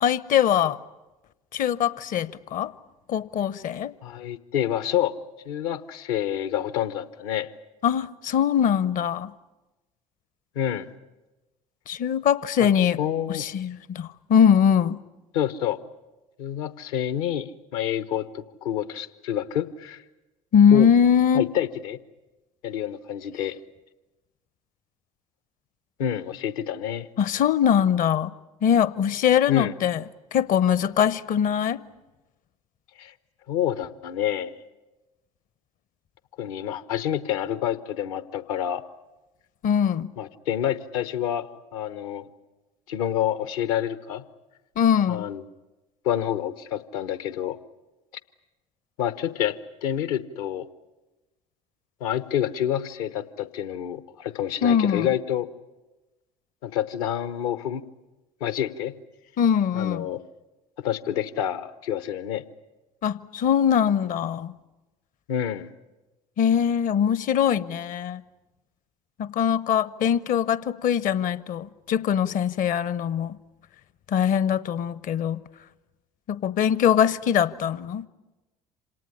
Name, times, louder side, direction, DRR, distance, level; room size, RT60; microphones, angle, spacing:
voice 1, 0.0-0.8 1.5-2.7 3.1-3.9 7.8-9.3 11.9-13.0 13.3-15.0 20.5-21.4 27.2-28.3 28.6-30.0 30.3-31.8 39.6-40.1 44.8-45.3 54.6-55.1 59.4-60.1 63.0-64.5 66.4-68.2 69.2-73.4 74.1-75.4 76.3-78.1, left 8 dB, 45° left, 0.9 m, -22 dB
voice 2, 4.0-5.1 5.4-7.5 10.5-10.9 12.6-12.7 13.0-13.4 15.3-15.8 16.4-20.0 20.7-20.9 21.3-22.0 22.6-23.6 26.0-27.1 29.5-29.7 33.0-33.1 33.5-34.5 36.4-38.9 40.2-42.3 42.9-44.2 45.1-45.4 46.0-47.6 49.0-50.7 52.0-55.5 56.6-57.8 58.4-58.9 59.7-60.2 60.8-62.4 65.3-65.7, left 10 dB, 65° left, 1.1 m, -28 dB
27.0 x 18.5 x 10.0 m
figure-of-eight pair, 60°, 20 cm